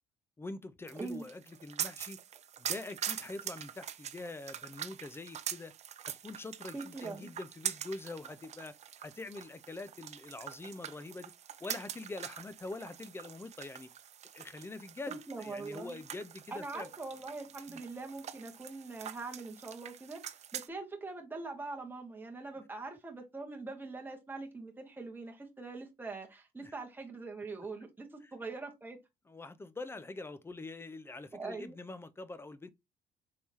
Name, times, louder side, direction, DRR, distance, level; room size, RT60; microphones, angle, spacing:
voice 1, 0.4-2.2 2.6-5.7 6.2-8.7 9.0-11.3 11.6-13.9 14.3-16.9 17.7-17.8 26.6-26.7 29.3-32.7, left 2 dB, 15° left, 0.5 m, -44 dB
voice 2, 0.9-1.2 6.7-7.3 15.1-16.0 16.5-29.0 31.3-31.8, right 3 dB, 10° right, 1.4 m, -43 dB
sound 1, 0.9-20.7, right 9 dB, 40° right, 0.5 m, -44 dB
4.7 x 3.5 x 2.7 m
cardioid pair, 110°, 17 cm